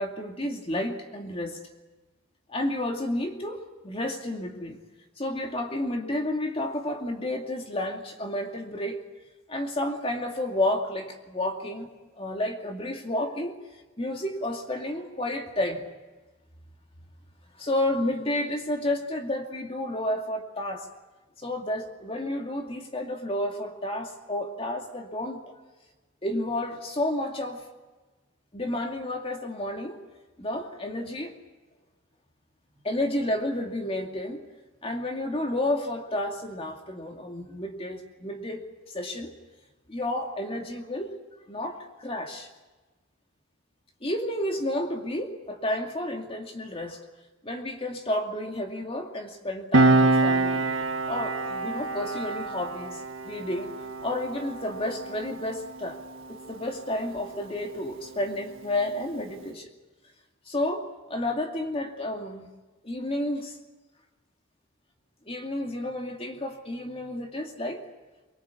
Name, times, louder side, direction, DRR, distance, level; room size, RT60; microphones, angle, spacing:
voice 1, 0.0-1.6 2.5-4.8 5.2-9.0 9.5-11.9 12.2-13.6 14.0-15.9 17.6-20.9 21.4-25.5 26.2-27.6 28.5-30.0 30.4-31.3 32.8-34.4 34.8-39.3 39.9-41.1 41.5-42.5 44.0-47.0 47.4-50.7 51.1-53.7 54.0-56.0 56.3-59.7 60.5-62.5 62.8-63.6 65.3-67.8, left 1 dB, 25° left, 3 dB, 2.4 m, -31 dB
Piano, 49.7-56.8 57.0-57.3, right 2 dB, 70° right, 1.4 m, -26 dB
24.0 x 22.5 x 8.5 m, 1.2 s
head